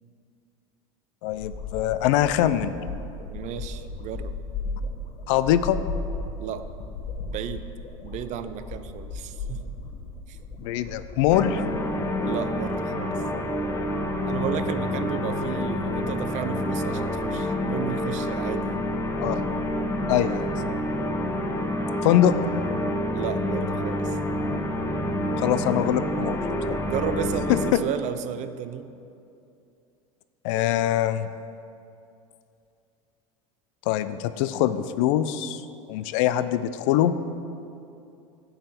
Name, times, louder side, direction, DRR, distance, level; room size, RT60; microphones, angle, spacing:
voice 1, 1.2-2.7 5.3-5.8 10.6-11.6 19.2-19.4 20.1-20.5 22.0-22.3 25.4-26.4 26.7-26.8 27.5-27.8 30.4-31.3 33.9-35.6 35.9-37.2, left 12 dB, 65° left, 13 dB, 0.4 m, -23 dB
sound 1, 1.3-12.1, left 3 dB, 40° left, 1.2 m, -36 dB
voice 2, 3.3-4.3 6.4-6.7 7.2-7.7 8.0-9.6 10.3-10.4 12.3-13.2 14.2-18.9 23.1-24.2 26.8-28.9, right 9 dB, 45° right, 11 dB, 0.5 m, -33 dB
sound 2, 11.3-27.7, left 1 dB, 15° left, 0.8 m, -28 dB
10.0 x 4.0 x 6.7 m, 2.6 s
hypercardioid pair, 95°, 17 cm